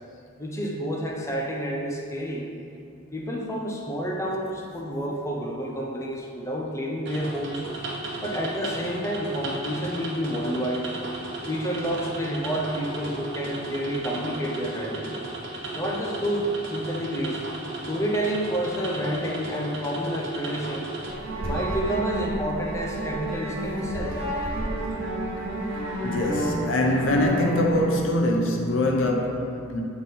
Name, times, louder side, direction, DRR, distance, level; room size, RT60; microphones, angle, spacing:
voice 1, 0.4-2.4 3.1-7.6 8.2-10.9 11.5-15.1 15.7-16.4 16.7-17.4 17.8-20.9 21.4-24.2, equal, 15° left, -2 dB, 0.6 m, -29 dB
sound 1, 7.1-21.1, right 2 dB, 60° right, 1.0 m, -35 dB
sound 2, 21.0-27.9, right 1 dB, 75° right, 1.5 m, -30 dB
voice 2, 26.0-29.8, left 1 dB, 70° left, 1 dB, 0.7 m, -23 dB
7.8 x 3.6 x 4.2 m, 2.5 s
head